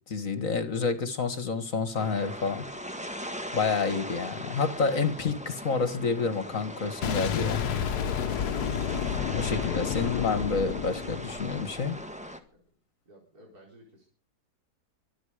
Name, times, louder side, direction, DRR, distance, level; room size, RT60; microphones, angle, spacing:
voice 1, 0.1-2.7 3.5-7.7 9.3-12.0, left 4 dB, 55° left, 11 dB, 2.2 m, -29 dB
sound 1, 1.9-12.4, equal, 5° right, 1.6 m, -39 dB
Boom, 7.0-11.9, left 8 dB, 75° left, 1.5 m, -30 dB
voice 2, 13.1-14.1, equal, 65° right, -1 dB, 4.9 m, -54 dB
24.5 x 9.7 x 5.1 m, 0.37 s
omnidirectional pair, 1.7 m